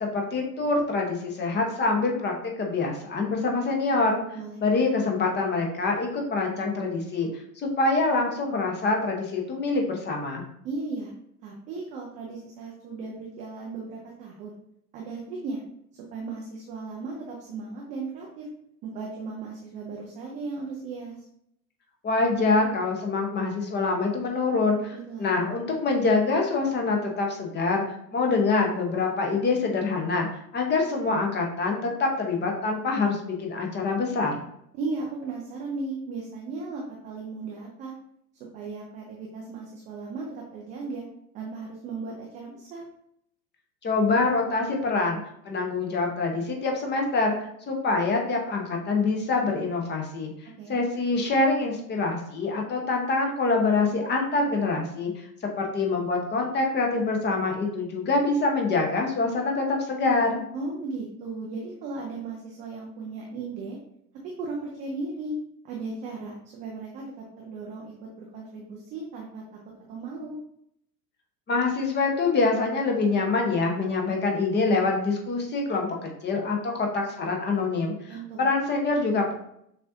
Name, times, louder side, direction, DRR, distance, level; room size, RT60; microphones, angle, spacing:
voice 1, 0.0-4.2 4.6-7.3 7.6-10.5 22.0-24.9 25.2-27.8 28.1-30.3 30.5-34.4 43.8-45.2 45.4-47.4 47.7-50.3 50.7-55.1 55.6-60.4 71.5-79.3, left 3 dB, 20° left, 1 dB, 0.9 m, -25 dB
voice 2, 10.6-11.1 11.4-14.5 14.9-15.6 16.1-18.5 18.8-21.1 24.9-25.3 34.7-37.9 38.5-41.0 41.3-42.8 50.6-50.8 60.5-63.8 64.4-65.3 65.6-69.4 69.9-70.4 78.1-78.5, right 3 dB, 15° right, -1 dB, 0.3 m, -36 dB
6.5 x 2.8 x 2.7 m, 0.74 s
figure-of-eight pair, 80°, 49 cm